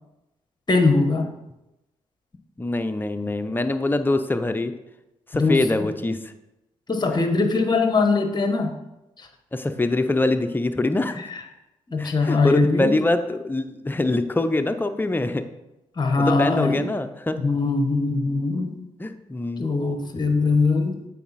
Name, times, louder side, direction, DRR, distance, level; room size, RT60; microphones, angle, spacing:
voice 1, 0.7-1.3 5.4-5.9 6.9-8.7 9.2-9.3 11.2-11.4 11.9-13.0 16.0-16.8 17.4-18.8 19.6-21.0, left 3 dB, 30° left, 5 dB, 1.1 m, -21 dB
voice 2, 2.6-4.7 5.3-6.3 9.5-11.2 12.0-15.4 16.2-17.4 19.0-19.7, left 2 dB, 15° left, 8 dB, 0.6 m, -24 dB
8.3 x 4.1 x 4.1 m, 0.93 s
supercardioid pair, 50°, 14 cm